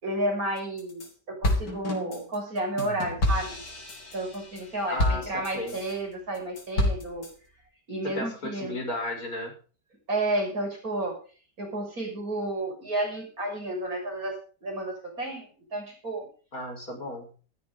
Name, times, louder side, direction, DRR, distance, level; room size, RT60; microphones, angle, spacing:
voice 1, 0.0-3.6 4.1-7.3 7.9-8.8 10.1-11.2 11.6-15.5 15.7-16.3, right 1 dB, 55° right, 1 dB, 7.1 m, -31 dB
sound 1, 0.6-1.1 1.4-5.9 6.3-7.3, left 1 dB, 75° left, 4.2 m, -29 dB
voice 2, 4.9-5.8 8.0-9.5 16.5-17.3, left 1 dB, 55° left, 2 dB, 6.8 m, -34 dB
16.0 x 13.5 x 3.9 m, 0.39 s
omnidirectional pair, 1.9 m